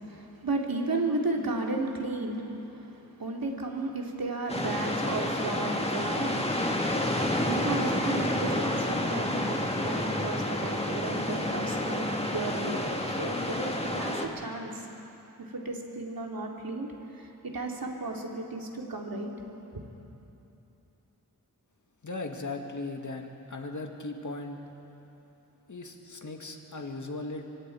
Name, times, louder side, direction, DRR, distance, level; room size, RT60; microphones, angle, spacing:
voice 1, 0.0-6.4 7.5-12.0 12.3-14.8 15.4-16.9 17.1-19.3 19.7-19.8, right 2 dB, 70° right, 0 dB, 2.7 m, -34 dB
sound 1, 4.5-14.3, left 1 dB, 15° left, 2.0 m, -29 dB
voice 2, 22.0-24.6 25.7-27.4, left 2 dB, 55° left, 3 dB, 2.1 m, -37 dB
25.0 x 24.5 x 4.7 m, 3.0 s
wide cardioid pair, 65°, 37 cm